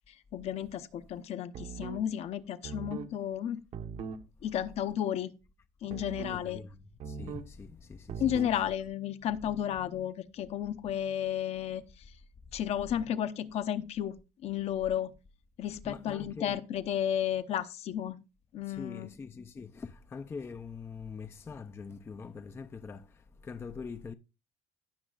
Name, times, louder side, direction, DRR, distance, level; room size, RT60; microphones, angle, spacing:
voice 1, 0.1-3.6 4.4-5.3 5.8-6.6 8.2-11.8 12.5-14.2 14.4-15.1 15.6-18.2 18.5-19.1, left 10 dB, 55° left, 0.7 m, -33 dB
sound 1, 1.5-2.0 2.6-3.1 3.7-4.2 5.9-6.4 7.0-7.5 8.1-8.6, right 6 dB, 60° right, 1.1 m, -40 dB
voice 2, 6.2-6.8 7.1-8.4 15.8-16.6 18.6-24.1, left 5 dB, 20° left, 0.4 m, -43 dB
17.5 x 6.2 x 2.4 m
cardioid pair, 150°, 13 cm